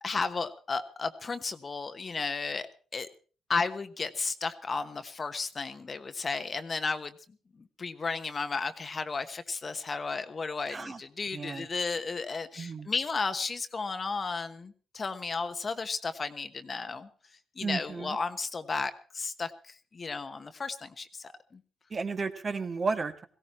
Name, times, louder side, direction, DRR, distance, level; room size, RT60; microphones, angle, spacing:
voice 1, 0.0-3.1 3.5-7.2 7.5-21.6, left 4 dB, 35° left, 10 dB, 1.2 m, -34 dB
voice 2, 10.7-11.0 11.3-11.7 12.6-12.9 17.6-18.2 21.9-23.3, right 4 dB, 35° right, 9 dB, 1.5 m, -33 dB
18.0 x 16.0 x 4.4 m, 0.40 s
cardioid pair, 90°, 0 cm